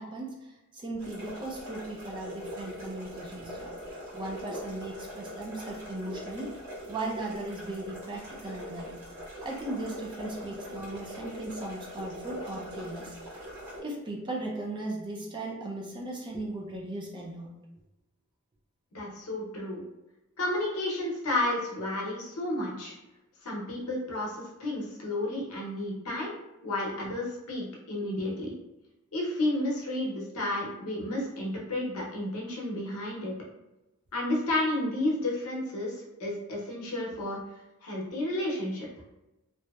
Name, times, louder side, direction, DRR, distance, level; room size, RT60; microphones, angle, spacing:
voice 1, 0.0-3.7 4.1-6.6 6.9-9.0 9.4-13.2 13.8-17.5, right 2 dB, 20° right, -1 dB, 0.3 m, -37 dB
sound 1, 1.0-13.8, equal, 80° right, 1.1 m, -42 dB
voice 2, 18.9-19.8 20.4-22.9 23.4-26.4 26.6-28.6 29.1-33.3 34.1-37.4 37.8-38.9, left 1 dB, 80° left, -3 dB, 0.7 m, -31 dB
2.7 x 2.0 x 2.2 m, 0.97 s
head